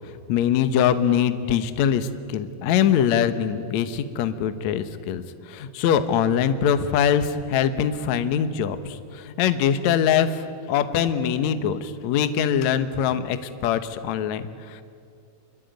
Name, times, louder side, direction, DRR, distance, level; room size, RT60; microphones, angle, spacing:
voice 1, 0.3-13.4 13.6-14.8, left 8 dB, 65° left, 10 dB, 1.8 m, -23 dB
26.0 x 23.5 x 9.2 m, 2.3 s
omnidirectional pair, 4.6 m